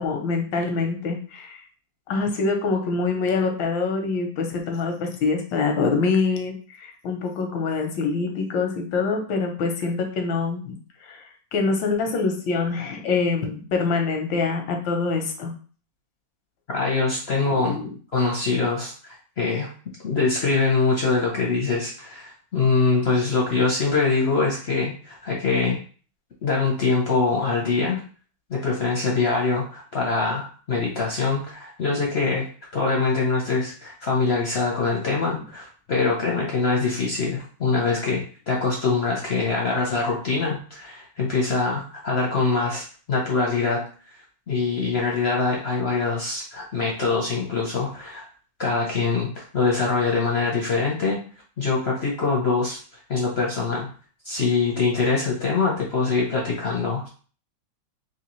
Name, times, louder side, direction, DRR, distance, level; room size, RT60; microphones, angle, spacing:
voice 1, 0.0-1.6 2.1-10.8 11.0-11.2 11.5-15.5 17.6-17.9, left 4 dB, 90° left, 4 dB, 1.5 m, -25 dB
voice 2, 16.7-17.8 18.1-19.7 20.0-25.8 26.4-28.0 28.5-32.5 32.7-43.8 44.1-44.2 44.5-48.2 48.6-51.2 51.6-52.8 53.1-53.9 54.2-57.1, left 4 dB, 55° left, -2 dB, 0.7 m, -23 dB
3.8 x 3.0 x 3.0 m, 0.40 s
omnidirectional pair, 2.0 m